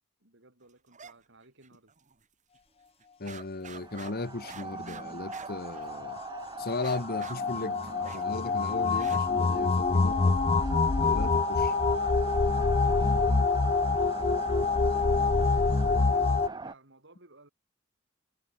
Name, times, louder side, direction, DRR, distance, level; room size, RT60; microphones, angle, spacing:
voice 1, 0.2-2.0 10.9-11.4 13.7-17.5, right 2 dB, 65° right, 6.5 m, -56 dB
sound 1, 0.9-1.1 1.4-2.2 2.5-2.6 3.0-6.2 6.7-9.5, right 5 dB, 40° right, 2.6 m, -48 dB
voice 2, 3.2-6.2 6.6-10.4 11.0-11.7, left 2 dB, 50° left, 1.3 m, -36 dB
sound 2, 3.7-16.7, right 4 dB, 20° right, 0.8 m, -40 dB
sound 3, 5.3-16.5, left 4 dB, 30° left, 0.5 m, -26 dB
head